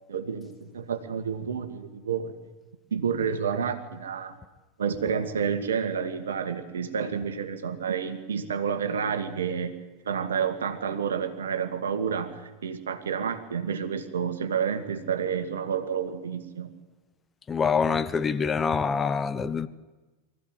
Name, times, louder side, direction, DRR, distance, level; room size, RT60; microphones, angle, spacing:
voice 1, 0.1-2.4 2.9-4.3 4.8-9.7 10.1-16.7, right 7 dB, 75° right, 2.2 m, -29 dB
voice 2, 17.5-19.7, left 6 dB, 20° left, 1.1 m, -25 dB
23.5 x 15.5 x 9.2 m
figure-of-eight pair, 90°, 0 cm